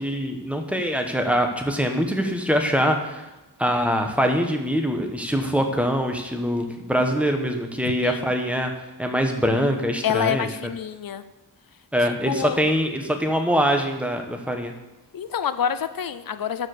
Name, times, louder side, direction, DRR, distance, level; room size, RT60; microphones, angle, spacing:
voice 1, 0.0-3.3 3.6-8.7 9.0-10.5 11.9-14.7, equal, 5° right, 4 dB, 1.2 m, -23 dB
voice 2, 8.0-8.3 10.0-11.2 12.0-12.6 15.1-16.7, left 8 dB, 55° left, 12 dB, 0.6 m, -27 dB
12.0 x 4.7 x 6.6 m, 1.0 s
wide cardioid pair, 115°, 41 cm